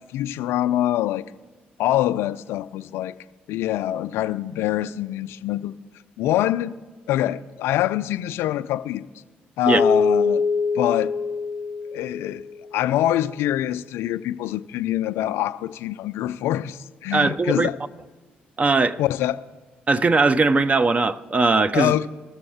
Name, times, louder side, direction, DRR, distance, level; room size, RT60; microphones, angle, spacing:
voice 1, 0.1-1.2 1.8-3.1 3.5-5.7 6.2-6.7 7.1-9.1 9.6-10.4 10.7-11.1 11.9-12.5 12.7-17.7 19.0-19.3 21.7-22.1, left 13 dB, 65° left, 0.4 m, -24 dB
Keyboard (musical), 9.7-12.6, left 4 dB, 75° right, 4.0 m, -23 dB
voice 2, 17.1-17.7 18.6-19.0 19.9-21.9, right 3 dB, 30° right, 0.6 m, -19 dB
20.0 x 6.8 x 3.5 m
figure-of-eight pair, 40°, 5 cm